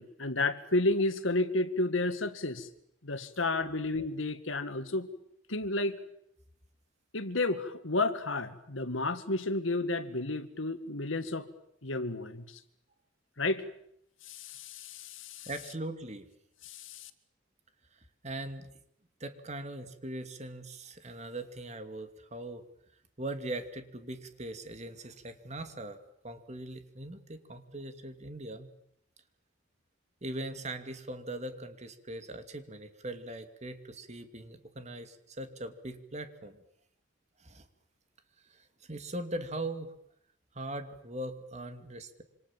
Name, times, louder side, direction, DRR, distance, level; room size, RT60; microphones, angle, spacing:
voice 1, 0.0-2.7 3.0-5.1 5.5-6.0 7.1-11.5 11.8-12.6 13.4-13.6 14.3-15.5 16.6-17.1, left 2 dB, 85° left, 11 dB, 2.0 m, -31 dB
voice 2, 15.5-16.3 18.2-18.7 19.2-22.6 23.2-26.0 26.2-28.7 30.2-36.6 37.4-37.7 38.5-39.9 40.5-42.2, right 1 dB, 35° right, 8 dB, 2.5 m, -40 dB
27.0 x 26.5 x 7.5 m, 0.73 s
head